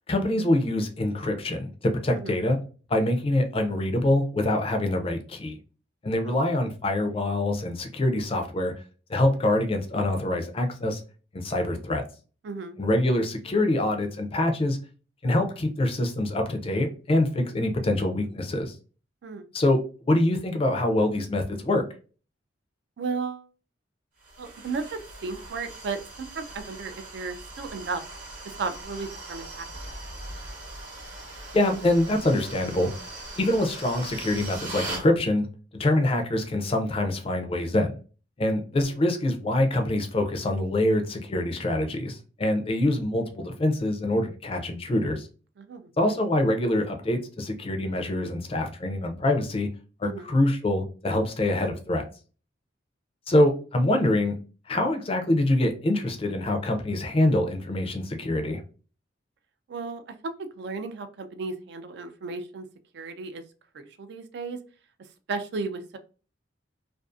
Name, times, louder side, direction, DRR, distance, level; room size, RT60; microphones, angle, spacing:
voice 1, 0.1-2.6 2.9-5.6 6.0-8.7 9.1-11.0 11.3-12.0 12.8-14.8 15.2-18.8 19.5-19.8 20.0-21.8 31.5-32.9 33.4-35.5 35.8-38.0 38.4-45.3 46.0-49.7 50.0-52.0 53.3-54.3 54.7-58.6, left 1 dB, 30° left, 5 dB, 0.4 m, -25 dB
voice 2, 12.4-12.8 19.2-19.4 23.0-23.5 24.4-28.0 28.4-29.7 45.6-45.9 50.0-50.3 59.7-60.0 60.6-62.7 62.9-63.4 63.7-64.6 65.3-66.0, right 4 dB, 60° right, 9 dB, 0.3 m, -34 dB
sound 1, 24.2-35.1, right 2 dB, 45° right, 0.8 m, -40 dB
2.5 x 2.4 x 2.3 m, 0.36 s
head